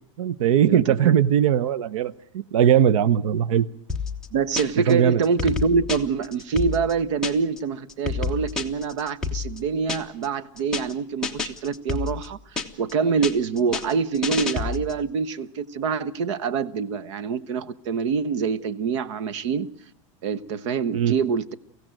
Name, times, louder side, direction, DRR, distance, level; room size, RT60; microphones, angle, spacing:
voice 1, 0.2-3.7 4.9-5.2 20.9-21.1, right 9 dB, 85° right, 0.9 m, -20 dB
voice 2, 0.7-1.1 4.3-19.7 20.2-21.6, right 5 dB, 60° right, 1.1 m, -25 dB
sound 1, 3.9-4.9 5.2-7.6 7.9-10.3 10.6-10.9 11.2-12.9 13.2-15.0, left 5 dB, 5° left, 1.1 m, -29 dB
24.0 x 16.0 x 9.1 m
supercardioid pair, 175°, 17 cm